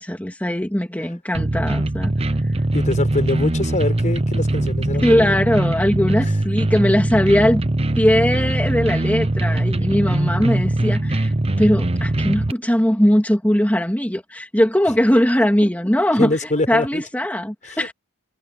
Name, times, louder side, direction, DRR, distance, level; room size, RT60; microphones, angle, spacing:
voice 1, 0.0-2.1 5.0-7.6 8.0-16.3 16.7-17.9, equal, 5° left, 2.7 m, -19 dB
sound 1, 1.3-12.5, right 1 dB, 25° right, 0.8 m, -21 dB
voice 2, 2.7-5.4 6.2-6.3 16.2-17.0 17.6-17.9, left 1 dB, 35° left, 5.6 m, -24 dB
head